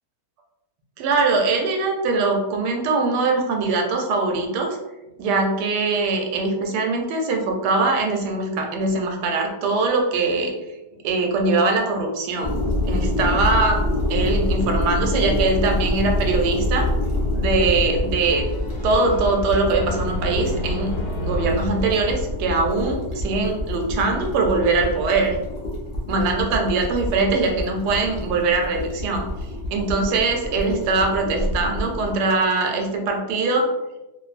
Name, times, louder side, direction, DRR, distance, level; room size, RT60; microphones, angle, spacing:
voice 1, 1.0-4.8 5.2-10.5 11.0-12.6 12.9-16.9 17.3-18.5 18.8-20.9 21.2-25.4 26.1-29.2 29.7-33.6, right 3 dB, 85° right, 2 dB, 1.2 m, -22 dB
sound 1, 12.4-32.1, left 1 dB, 65° left, 0.6 m, -26 dB
sound 2, 18.2-23.0, equal, 80° left, 1.3 m, -33 dB
2.6 x 2.5 x 2.4 m, 1.0 s
omnidirectional pair, 1.8 m